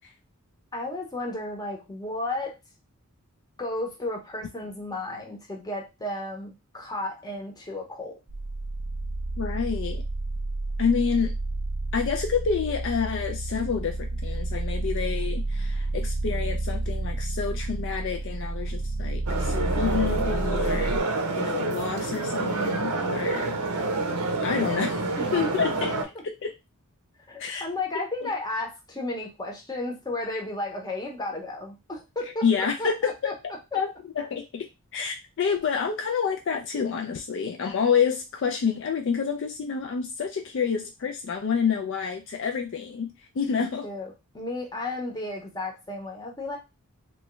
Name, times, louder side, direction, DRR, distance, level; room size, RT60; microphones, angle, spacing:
voice 1, 0.7-2.6 3.6-8.2 25.2-25.7 27.3-32.5 32.8-33.3 43.5-46.6, left 2 dB, 20° left, 0 dB, 0.8 m, -33 dB
sound 1, 8.3-21.0, right 2 dB, 35° right, 0.4 m, -30 dB
voice 2, 9.4-10.0 10.8-11.3 11.9-21.0 21.4-23.5 24.4-25.0 25.3-25.9 26.2-26.5 27.4-27.6 28.2-28.3 32.4-33.3 33.7-43.9, left 6 dB, 55° left, 4 dB, 0.4 m, -28 dB
sound 2, 19.3-26.0, right 3 dB, 90° right, 0.6 m, -28 dB
3.0 x 2.3 x 3.0 m, 0.24 s
head